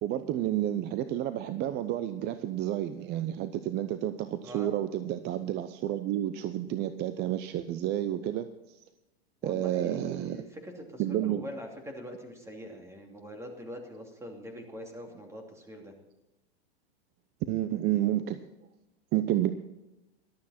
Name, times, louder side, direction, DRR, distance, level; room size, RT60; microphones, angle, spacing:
voice 1, 0.0-8.8 9.4-10.4 11.0-11.4 17.5-18.4 19.1-19.5, right 12 dB, 35° right, 11 dB, 0.7 m, -30 dB
voice 2, 9.4-15.9, equal, 10° right, 2 dB, 2.9 m, -43 dB
14.0 x 12.5 x 4.3 m, 0.96 s
hypercardioid pair, 115°, 31 cm